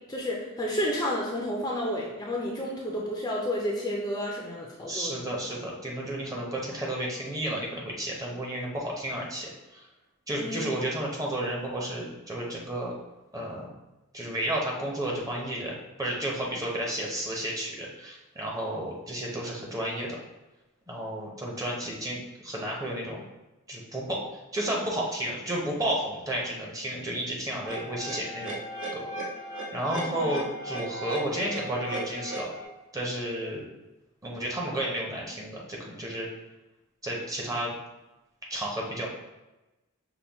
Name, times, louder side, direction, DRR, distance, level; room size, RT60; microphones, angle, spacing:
voice 1, 0.1-5.3 10.4-10.6 30.0-30.4 33.4-33.5, equal, 15° left, -3 dB, 0.5 m, -31 dB
voice 2, 4.9-9.9 10.3-12.9 13.3-13.7 14.1-15.7 16.0-20.2 20.9-23.2 23.7-24.2 24.5-28.6 28.9-29.0 29.7-32.5 32.9-33.6 34.2-36.3 37.0-37.7 38.5-39.1, right 1 dB, 15° right, -2 dB, 0.8 m, -32 dB
sound 1, 27.6-32.6, right 1 dB, 60° right, 1.1 m, -36 dB
5.6 x 2.3 x 3.4 m, 1.0 s
head